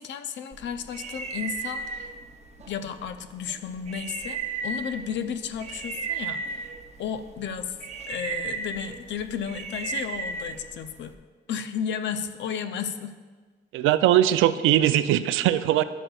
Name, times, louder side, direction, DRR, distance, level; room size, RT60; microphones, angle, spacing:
voice 1, 0.0-2.1 2.7-6.6 7.0-7.7 8.1-11.1 11.5-13.1, left 7 dB, 65° left, 10 dB, 0.5 m, -33 dB
sound 1, 0.5-11.1, right 5 dB, 35° right, 0.7 m, -36 dB
voice 2, 13.7-15.8, right 12 dB, 85° right, 13 dB, 0.4 m, -20 dB
11.0 x 7.6 x 2.3 m, 1.4 s
cardioid pair, 90°, 20 cm